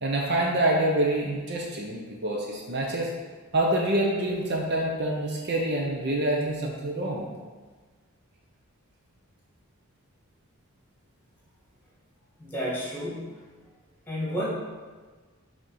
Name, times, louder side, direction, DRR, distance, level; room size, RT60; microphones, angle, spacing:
voice 1, 0.0-3.1 3.5-7.3, right 1 dB, 50° right, -1 dB, 0.8 m, -26 dB
voice 2, 12.4-13.4 14.1-14.5, equal, 10° left, -7 dB, 2.0 m, -31 dB
6.3 x 3.6 x 5.6 m, 1.4 s
head